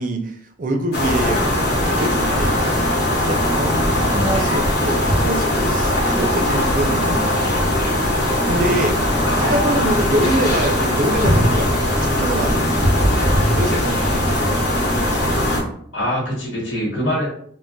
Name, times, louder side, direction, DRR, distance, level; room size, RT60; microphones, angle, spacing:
voice 1, 0.0-1.4 1.9-2.6 3.2-7.6 8.4-9.0 9.4-11.7 12.0-12.8 13.5-14.6, right 1 dB, 45° right, 5 dB, 0.4 m, -25 dB
Abend Dämmerung Ambi, 0.9-15.6, left 1 dB, 55° left, 0.9 m, -19 dB
voice 2, 9.2-9.9 15.9-17.3, equal, 85° left, -4 dB, 1.3 m, -24 dB
2.2 x 2.1 x 3.8 m, 0.63 s
head